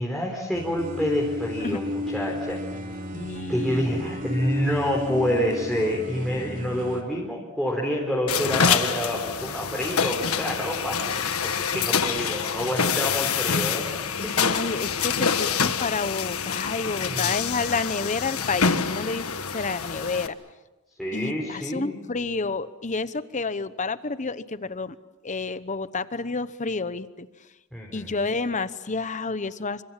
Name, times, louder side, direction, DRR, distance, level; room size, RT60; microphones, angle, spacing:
voice 1, 0.0-2.6 3.5-13.9 14.2-14.4 17.0-17.6 21.0-22.0 27.7-28.1, equal, ahead, -3 dB, 4.0 m, -28 dB
sound 1, 0.5-7.0, left 1 dB, 35° right, 3.1 m, -33 dB
voice 2, 3.1-4.2 14.2-19.3 19.5-20.4 21.1-24.9 25.2-27.3 27.9-29.8, left 4 dB, 35° left, 15 dB, 0.9 m, -30 dB
sound 2, 8.3-20.3, left 6 dB, 70° left, 1.5 m, -26 dB
28.5 x 26.0 x 7.4 m, 1.1 s
head